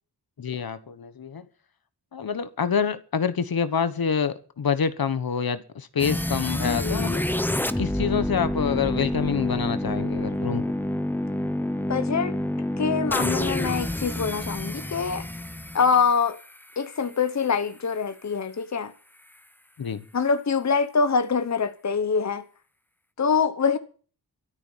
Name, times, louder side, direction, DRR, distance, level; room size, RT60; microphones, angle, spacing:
voice 1, 0.4-1.5 2.1-7.3 7.8-10.7 19.8-20.0, left 6 dB, 65° left, 1.3 m, -27 dB
sound 1, 6.0-17.0, left 1 dB, 5° left, 0.8 m, -28 dB
voice 2, 6.6-7.1 11.9-12.3 12.8-15.2 15.7-16.4 16.8-18.9 20.1-22.4 23.2-23.8, left 5 dB, 45° left, 1.0 m, -24 dB
13.0 x 10.5 x 7.3 m
wide cardioid pair, 140°, 39 cm